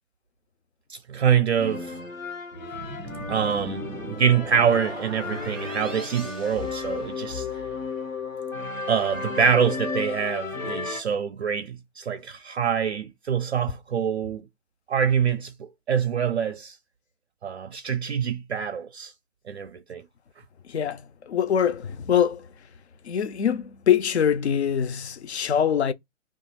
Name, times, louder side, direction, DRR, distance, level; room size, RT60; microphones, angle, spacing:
voice 1, 0.9-2.0 3.3-7.5 8.9-14.4 14.9-16.8 17.4-19.1 19.5-20.0, right 7 dB, 55° right, 0.4 m, -25 dB
sound 1, 1.6-11.0, left 4 dB, 80° left, 1.0 m, -33 dB
sound 2, 2.7-7.5, right 2 dB, ahead, 0.4 m, -40 dB
voice 2, 20.7-21.0 21.3-22.4 23.1-25.9, left 8 dB, 60° left, 0.5 m, -23 dB
2.7 x 2.4 x 4.1 m
figure-of-eight pair, 130°, 39 cm